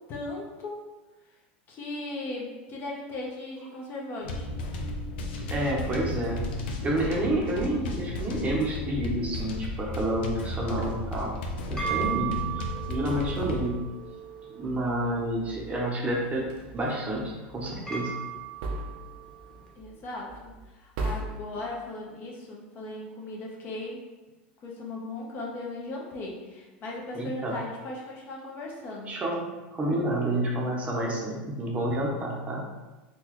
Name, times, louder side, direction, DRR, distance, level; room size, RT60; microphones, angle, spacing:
voice 1, 0.1-0.8 1.7-4.6 19.7-24.0 24.6-29.2, left 2 dB, 40° left, -2 dB, 0.8 m, -37 dB
sound 1, 4.2-13.7, left 1 dB, 80° left, 0.5 m, -34 dB
voice 2, 5.5-6.5 6.8-11.4 11.7-13.8 14.5-18.1 27.1-27.5 29.1-29.5 29.7-32.7, right 1 dB, 25° right, -2 dB, 0.8 m, -29 dB
sound 2, 11.3-19.6, right 9 dB, 10° left, 0.8 m, -38 dB
sound 3, 16.1-16.9 18.6-19.4 19.8-20.0 20.3-20.6 21.0-21.6, right 1 dB, 70° right, 0.7 m, -35 dB
3.9 x 2.3 x 3.0 m, 1.1 s
supercardioid pair, 115°, 5 cm